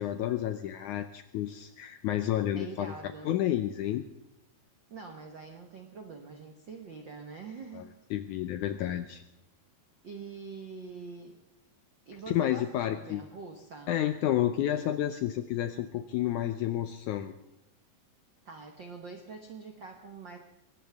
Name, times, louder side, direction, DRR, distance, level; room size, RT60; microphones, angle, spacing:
voice 1, 0.0-2.9 3.3-4.0 7.7-7.9 8.1-9.2 12.3-13.2 13.9-17.3, left 12 dB, 80° left, 9 dB, 1.8 m, -30 dB
voice 2, 2.5-3.3 4.9-7.9 10.0-11.4 12.1-13.9 18.4-20.4, right 4 dB, 70° right, 4 dB, 1.1 m, -45 dB
22.0 x 18.0 x 3.5 m, 0.90 s
omnidirectional pair, 4.2 m